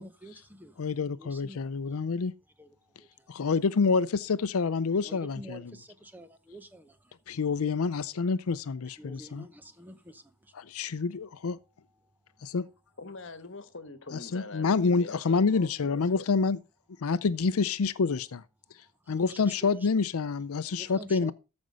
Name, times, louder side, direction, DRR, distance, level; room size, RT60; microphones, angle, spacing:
voice 1, 0.0-0.7 1.2-1.6 2.6-2.7 3.8-4.0 5.0-7.0 8.9-10.2 19.2-19.9 20.7-21.3, equal, 10° right, 0.7 m, -48 dB
voice 2, 0.8-2.3 3.3-5.8 7.3-9.5 10.5-11.6 12.4-12.7 14.1-16.6 17.0-18.4 19.1-21.3, left 4 dB, 85° left, 0.5 m, -28 dB
voice 3, 13.0-16.2, left 3 dB, 60° left, 1.4 m, -43 dB
14.0 x 5.3 x 5.2 m
head